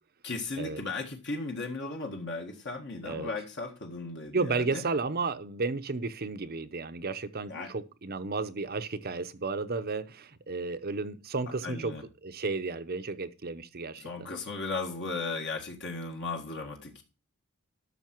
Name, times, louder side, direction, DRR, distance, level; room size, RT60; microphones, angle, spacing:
voice 1, 0.2-4.8 7.5-7.7 11.6-12.0 14.0-17.0, left 3 dB, 50° left, 1.7 m, -36 dB
voice 2, 4.3-11.9 12.2-14.3, right 3 dB, 45° right, 0.8 m, -33 dB
12.5 x 6.5 x 4.5 m
head